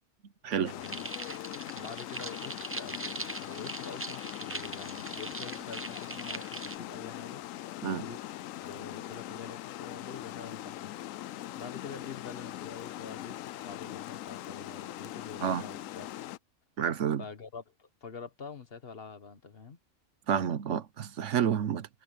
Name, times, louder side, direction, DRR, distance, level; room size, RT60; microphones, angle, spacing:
voice 1, 0.4-1.1 1.7-7.4 7.9-11.3 11.5-16.1 17.2-19.8, left 5 dB, 45° left, 1.6 m, -46 dB
Water, 0.6-16.4, left 14 dB, 80° left, 1.0 m, -41 dB
sound 1, 0.8-6.8, right 2 dB, 15° right, 0.6 m, -41 dB
voice 2, 16.8-17.2 20.3-21.9, right 8 dB, 65° right, 1.1 m, -29 dB
omnidirectional pair, 1.4 m